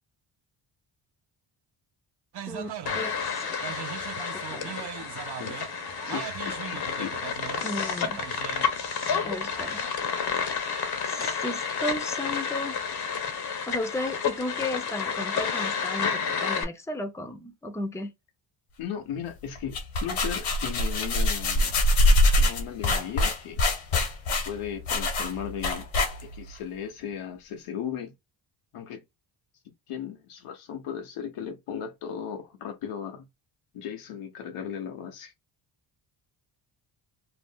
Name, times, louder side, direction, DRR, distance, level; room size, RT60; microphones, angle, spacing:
sound 1, 2.3-9.9, right 9 dB, 50° right, 0.6 m, -40 dB
voice 1, 2.5-3.8 4.3-5.1 7.6-8.2 9.2-9.8 10.1-10.7 11.1-12.8 13.7-18.1, left 1 dB, 5° left, 0.6 m, -35 dB
sound 2, 2.9-16.6, left 6 dB, 50° left, 0.8 m, -30 dB
voice 2, 5.0-5.6 6.0-7.2 18.8-21.7 22.4-23.6 24.5-25.9 26.2-28.2 28.7-29.0 29.6-33.3 33.7-35.3, left 8 dB, 90° left, 0.8 m, -36 dB
sound 3, 19.6-26.5, left 1 dB, 70° left, 1.1 m, -24 dB
2.5 x 2.0 x 3.5 m
cardioid pair, 75°, 50 cm